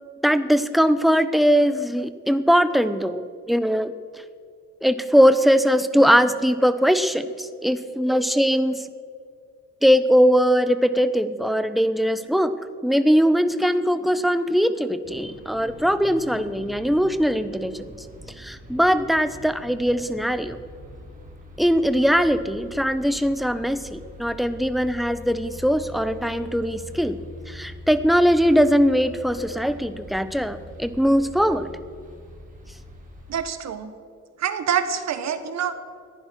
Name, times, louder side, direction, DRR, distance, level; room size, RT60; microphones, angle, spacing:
voice 1, 0.2-3.9 4.8-8.9 9.8-12.5 12.8-17.9 18.4-20.6 21.6-27.2 27.5-31.7, equal, ahead, 12 dB, 0.8 m, -20 dB
sound 1, 15.0-33.4, left 1 dB, 25° right, 3.8 m, -43 dB
voice 2, 33.3-33.9 34.4-35.7, right 8 dB, 60° right, 10 dB, 1.3 m, -26 dB
14.5 x 10.5 x 6.1 m, 2.1 s
cardioid pair, 90°, 30 cm